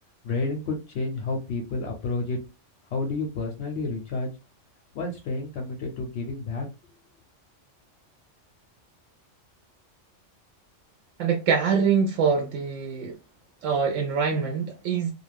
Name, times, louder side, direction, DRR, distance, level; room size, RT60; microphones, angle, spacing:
voice 1, 0.2-2.4 2.9-4.3 4.9-6.7, left 3 dB, 65° left, 0.8 m, -30 dB
voice 2, 11.2-13.1 13.6-15.1, right 6 dB, 75° right, 0.9 m, -24 dB
2.4 x 2.3 x 3.2 m
omnidirectional pair, 1.3 m